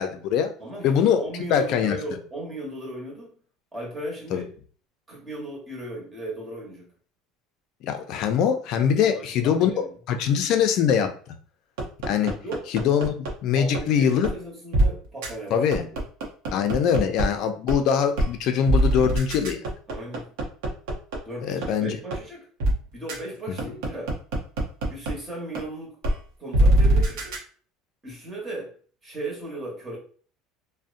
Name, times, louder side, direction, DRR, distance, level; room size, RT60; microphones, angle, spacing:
voice 1, 0.0-0.5 0.8-1.2 1.5-2.0 4.3-4.4 7.8-9.7 10.1-11.1 12.1-12.3 12.7-14.3 15.5-15.9 16.5-19.6 21.4-22.0, left 8 dB, 55° left, 7 dB, 0.4 m, -22 dB
voice 2, 0.6-3.3 3.7-4.5 5.1-6.9 9.0-9.9 12.4-12.7 13.5-15.6 19.9-20.3 21.2-22.5 22.9-24.2 24.9-26.0 26.4-27.3 28.0-28.7 29.0-30.0, right 1 dB, 15° right, -3 dB, 1.0 m, -36 dB
sound 1, 11.8-13.3 13.7-13.8 14.2-14.3 14.7-14.9 15.2-15.3 15.7-17.2 17.7-17.8 18.2-18.3 18.7-21.2 21.6-21.7 22.1-22.2 22.6-22.7 23.1-23.2 23.6-25.1 25.5-25.6 26.0-26.1 26.5-27.4, right 1 dB, 85° right, 0.7 m, -22 dB
2.6 x 2.0 x 2.5 m, 0.43 s
cardioid pair, 145°, 0 cm